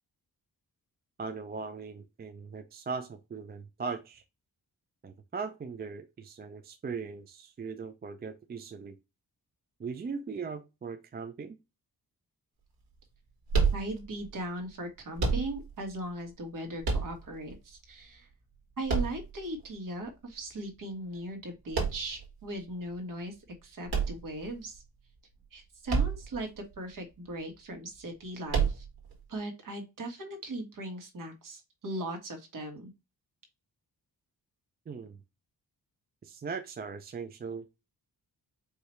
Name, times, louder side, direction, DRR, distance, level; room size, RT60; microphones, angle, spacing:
voice 1, 1.2-4.2 5.0-9.0 9.8-11.6 34.9-35.2 36.2-37.6, right 5 dB, 25° right, 8 dB, 0.4 m, -39 dB
sound 1, 13.5-14.3 15.2-15.9 16.8-17.5 18.9-19.7 21.7-22.3 23.9-24.8 25.9-26.4 26.7-26.8 28.5-29.1, right 5 dB, 75° right, 1.7 m, -29 dB
voice 2, 13.7-18.3 18.8-23.3 23.6-24.8 25.5-28.8 29.3-32.9, right 1 dB, 55° right, 4 dB, 1.6 m, -38 dB
4.8 x 2.8 x 3.1 m, 0.24 s
wide cardioid pair, 145°, 38 cm